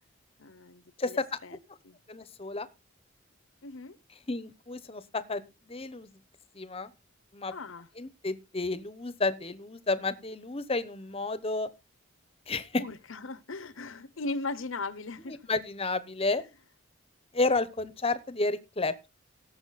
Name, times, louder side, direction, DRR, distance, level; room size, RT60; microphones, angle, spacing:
voice 1, 0.4-1.6 1.8-2.0 3.6-4.0 7.5-7.9 12.8-15.5, left 3 dB, 75° left, 0.9 m, -38 dB
voice 2, 1.0-1.4 2.1-2.7 4.3-6.1 6.5-6.9 7.3-7.5 8.0-11.7 12.5-12.8 15.3-16.4 17.3-19.1, left 3 dB, 30° left, 0.9 m, -31 dB
17.5 x 7.2 x 4.1 m
head